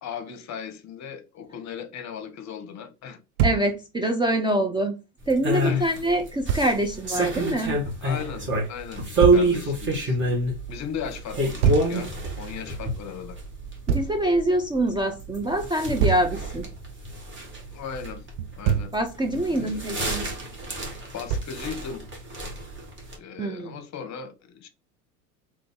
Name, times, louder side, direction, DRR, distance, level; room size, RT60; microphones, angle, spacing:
voice 1, 0.0-3.2 5.5-6.0 8.0-10.2 10.7-13.4 17.7-18.2 18.6-18.9 19.4-20.0 20.7-20.8 21.1-22.0 23.2-24.7, left 7 dB, 40° left, 1.0 m, -37 dB
voice 2, 3.4-5.0 5.3-7.8 13.9-16.7 18.9-20.3 23.4-23.8, right 1 dB, 10° right, 0.5 m, -25 dB
Thump thud, 3.4-3.7 6.5-6.7 9.2-9.5 11.6-11.9 13.9-14.2 16.0-16.3 18.4-19.0 21.3-21.6, right 7 dB, 75° right, 0.7 m, -23 dB
sound 1, 5.2-23.2, right 1 dB, 25° right, 1.7 m, -28 dB
3.8 x 3.1 x 3.6 m
hypercardioid pair, 85°, 44 cm